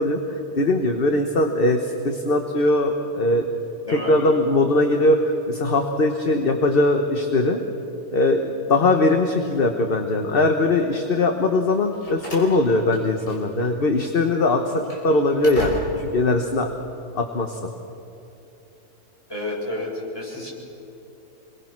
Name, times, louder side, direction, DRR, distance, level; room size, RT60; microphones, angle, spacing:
voice 1, 0.0-3.4 3.9-7.6 8.1-16.7 17.2-17.7, left 2 dB, 40° left, 4 dB, 1.4 m, -21 dB
Slam, 11.7-13.7 13.9-14.1 14.6-16.2, equal, 60° left, 5.5 m, -36 dB
voice 2, 19.3-20.5, left 1 dB, 15° left, -5 dB, 7.3 m, -30 dB
27.5 x 22.5 x 6.0 m, 3.0 s
omnidirectional pair, 1.5 m